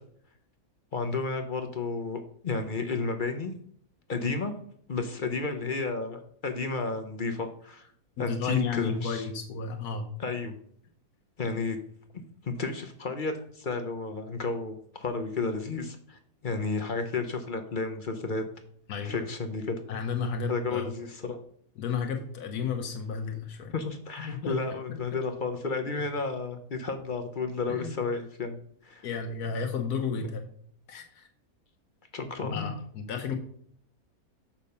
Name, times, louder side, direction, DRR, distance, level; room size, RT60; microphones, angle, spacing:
voice 1, 0.9-3.5 4.1-4.5 4.9-7.9 8.2-9.3 10.2-10.6 11.4-11.8 12.4-18.4 19.0-19.8 20.5-21.4 22.8-22.9 23.7-28.6 28.8-29.1 32.1-32.7, left 3 dB, 40° left, 6 dB, 0.8 m, -32 dB
voice 2, 8.2-10.1 18.9-19.3 19.9-20.9 21.8-23.7 24.2-24.6 24.8-25.0 27.7-28.0 29.0-30.5 30.9-31.3 32.5-33.3, left 6 dB, 85° left, 5 dB, 1.4 m, -32 dB
6.8 x 5.8 x 5.4 m, 0.62 s
omnidirectional pair, 1.6 m